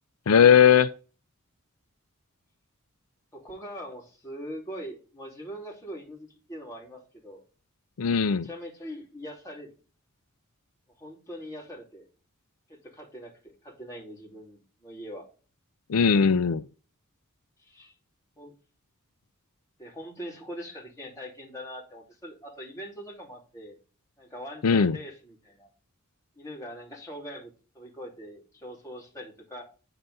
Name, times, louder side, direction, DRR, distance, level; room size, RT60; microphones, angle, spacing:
voice 1, 0.3-0.9 8.0-8.5 15.9-16.6 24.6-25.0, left 7 dB, 85° left, 0.5 m, -19 dB
voice 2, 3.3-7.4 8.3-9.7 11.0-12.1 12.7-15.3 17.6-17.9 18.4-18.5 19.8-23.8 24.2-25.7 26.4-29.6, equal, 15° left, 3.0 m, -42 dB
9.1 x 3.9 x 5.4 m
head